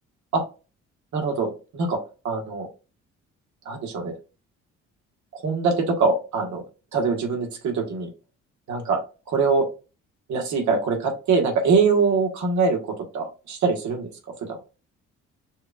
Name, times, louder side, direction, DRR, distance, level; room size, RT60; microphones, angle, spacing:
voice 1, 1.1-2.0 2.2-2.7 3.6-4.1 5.3-6.6 6.9-8.1 8.7-9.0 9.3-9.7 10.3-14.1 14.4-14.6, right 4 dB, 70° right, 2 dB, 1.5 m, -23 dB
6.2 x 2.5 x 2.3 m, 0.32 s
cardioid pair, 90°, 30 cm